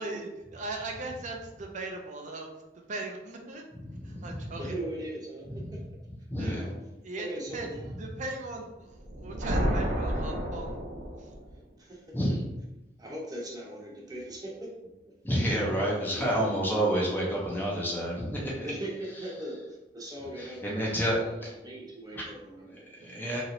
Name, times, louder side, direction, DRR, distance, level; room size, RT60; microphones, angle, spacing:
voice 1, 0.0-2.5 2.7-3.6 4.0-4.7 6.4-6.6 7.0-7.3 7.5-7.7 8.0-10.8 11.2-11.3 23.0-23.2, right 2 dB, 40° right, 2 dB, 0.4 m, -39 dB
voice 2, 3.8-4.5 5.5-5.7 6.3-6.6 12.1-12.5 15.2-18.7 20.4-21.2 22.7-23.4, equal, 10° left, -4 dB, 0.6 m, -29 dB
voice 3, 4.6-5.8 6.5-6.7 7.1-7.9 11.8-12.0 13.0-14.7 16.2-16.5 18.6-22.7, right 1 dB, 20° right, -3 dB, 0.8 m, -39 dB
sound 1, 9.0-11.6, equal, 70° right, 0.7 m, -30 dB
3.0 x 2.9 x 2.6 m, 0.97 s
head